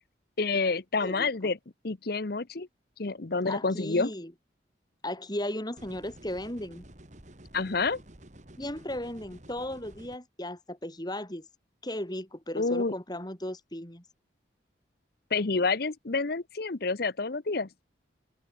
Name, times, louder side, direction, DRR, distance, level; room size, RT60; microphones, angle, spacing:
voice 1, 0.4-1.6 1.8-2.7 3.0-4.1 7.5-8.0 12.6-12.9 15.3-17.7, left 3 dB, 55° left, 0.9 m, -28 dB
voice 2, 1.0-1.5 3.5-4.3 5.0-6.8 8.6-11.5 11.8-14.0, left 1 dB, 20° left, 3.7 m, -36 dB
sound 1, 5.8-10.2, right 1 dB, 40° right, 2.7 m, -51 dB
head